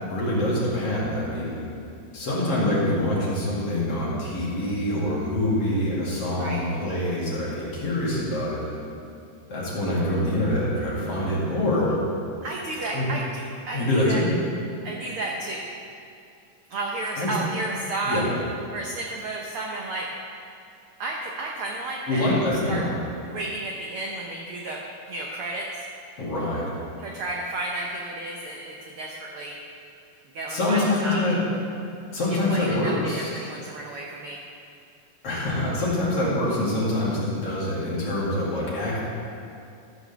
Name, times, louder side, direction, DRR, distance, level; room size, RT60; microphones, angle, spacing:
voice 1, 0.1-1.6 2.1-8.8 9.5-11.9 12.9-13.0 13.7-14.3 17.2-17.3 18.1-18.3 22.1-22.9 26.2-26.6 30.5-31.4 32.1-33.4 35.2-39.0, left 1 dB, 50° left, -7 dB, 3.1 m, -25 dB
voice 2, 12.4-14.2 14.8-15.7 16.7-18.3 18.7-20.1 21.0-22.3 22.7-22.8 23.3-24.8 25.1-25.8 27.0-29.6 30.2-31.4 32.3-34.4, right 2 dB, 90° right, -1 dB, 1.2 m, -32 dB
13.5 x 5.0 x 6.8 m, 2.5 s
omnidirectional pair, 3.6 m